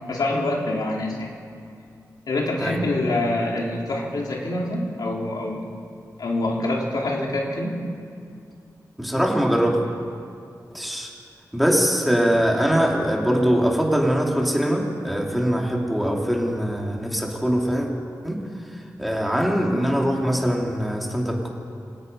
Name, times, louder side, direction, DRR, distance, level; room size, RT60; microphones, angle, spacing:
voice 1, 0.1-1.3 2.3-5.6 6.2-7.8, left 2 dB, 80° left, -2 dB, 4.2 m, -25 dB
voice 2, 9.0-9.8 10.7-11.1 11.5-17.9 18.2-18.4 19.0-21.5, equal, ahead, -1 dB, 2.9 m, -22 dB
28.5 x 25.0 x 5.5 m, 2.4 s
wide cardioid pair, 180°, 7 cm